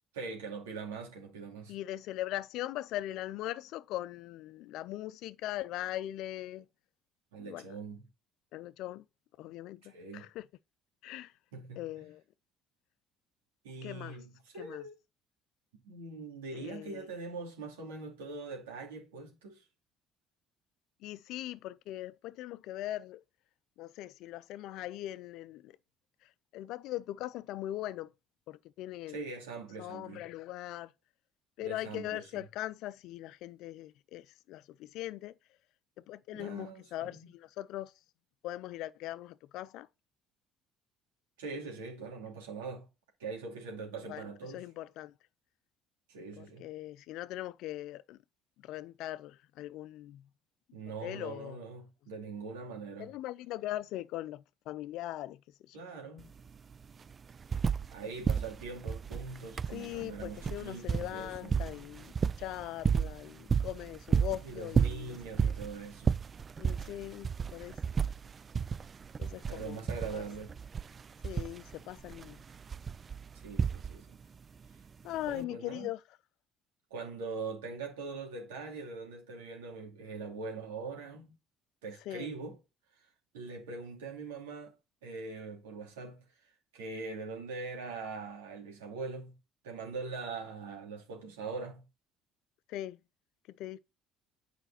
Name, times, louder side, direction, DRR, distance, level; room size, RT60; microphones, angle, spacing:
voice 1, 0.1-1.7 7.3-8.0 9.8-10.3 11.5-12.1 13.6-14.9 15.7-19.6 29.1-30.3 31.6-32.5 36.3-37.3 41.4-42.9 43.2-44.7 46.1-46.6 50.7-53.1 55.7-56.3 57.9-61.7 64.4-66.1 69.5-70.6 73.4-74.2 75.2-75.9 76.9-81.4 81.8-82.6 83.3-84.7 85.0-86.2 86.7-89.3 89.6-91.8, right 4 dB, 90° right, 2.7 m, -42 dB
voice 2, 1.7-6.7 7.4-7.7 8.5-9.0 9.4-10.5 11.0-11.3 11.8-12.2 13.8-14.2 14.6-14.8 16.5-17.1 21.0-23.2 23.8-25.7 26.5-28.1 28.5-29.2 29.8-30.9 31.6-35.3 36.0-37.9 38.4-39.9 44.1-44.3 44.5-45.1 46.4-48.2 48.6-50.3 51.0-51.6 53.0-55.4 55.7-55.8 59.7-65.2 65.4-65.5 66.6-67.8 69.2-69.8 70.1-70.2 71.2-72.4 75.0-76.0 82.1-82.3 92.7-93.0 93.6-93.8, left 14 dB, 70° left, 0.4 m, -40 dB
sound 1, 56.2-56.3 56.5-58.0 58.2-74.2 75.3-75.4, right 6 dB, 35° right, 0.3 m, -32 dB
9.0 x 5.1 x 4.1 m
hypercardioid pair, 65°, 0 cm